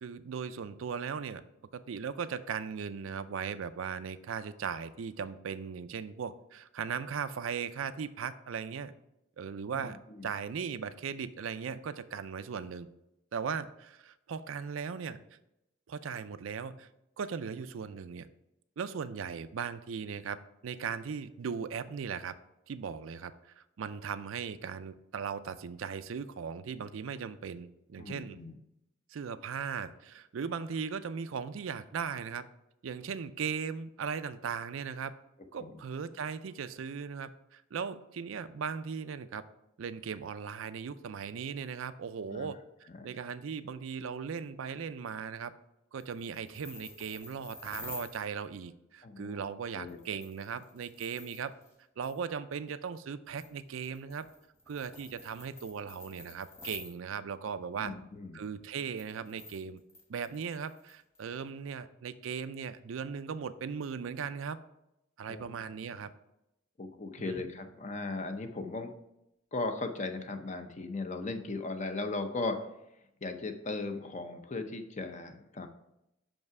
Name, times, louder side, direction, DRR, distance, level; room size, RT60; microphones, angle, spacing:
voice 1, 0.0-1.4 1.7-8.9 9.4-10.0 10.2-12.9 13.3-15.2 15.9-16.9 17.2-18.3 18.8-22.3 22.7-28.4 29.1-32.5 32.8-35.2 35.5-39.4 39.8-45.5 45.9-51.5 52.0-54.3 54.7-57.9 58.3-59.8 60.1-64.6 65.2-66.1 67.2-67.4, right 6 dB, 80° right, 12 dB, 0.4 m, -38 dB
voice 2, 9.7-10.3 28.0-28.6 35.6-35.8 42.3-42.5 42.9-43.1 49.0-49.5 49.7-50.0 57.8-58.5 65.3-66.0 66.8-68.9 69.5-72.6 73.2-75.7, left 3 dB, 35° left, 7 dB, 0.6 m, -37 dB
sound 1, 45.9-48.2 49.9-51.7 52.0-52.2 53.3-56.9 58.6-61.2, left 3 dB, 15° left, 1.3 m, -49 dB
5.8 x 5.4 x 4.7 m, 0.85 s
head